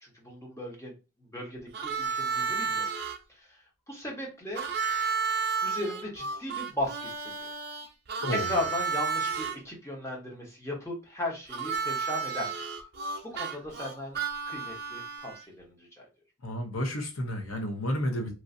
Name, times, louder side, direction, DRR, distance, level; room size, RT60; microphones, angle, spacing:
voice 1, 0.0-0.9 1.3-2.8 3.3-3.6 3.9-4.7 5.6-7.5 8.3-12.5 13.3-14.2 14.5-16.1, left 1 dB, 15° left, 0.8 m, -36 dB
Harmonica, 1.7-3.2 4.5-9.6 11.5-15.4, right 5 dB, 50° right, 0.5 m, -32 dB
voice 2, 8.2-8.6 16.4-18.3, equal, 85° left, 0.8 m, -31 dB
3.0 x 2.5 x 2.5 m
head